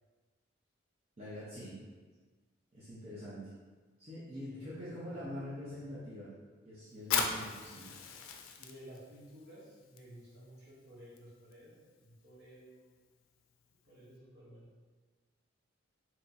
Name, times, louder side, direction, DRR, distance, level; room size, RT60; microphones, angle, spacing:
voice 1, 1.2-1.8 2.7-3.5 4.0-6.3 6.6-7.9, equal, 30° right, -10 dB, 0.7 m, -44 dB
voice 2, 4.4-5.3 5.7-6.0 8.3-12.9 13.8-14.7, equal, 55° right, -7 dB, 1.1 m, -54 dB
Fire, 7.0-14.2, left 6 dB, 85° left, 0.4 m, -41 dB
4.3 x 3.0 x 2.6 m, 1.4 s
head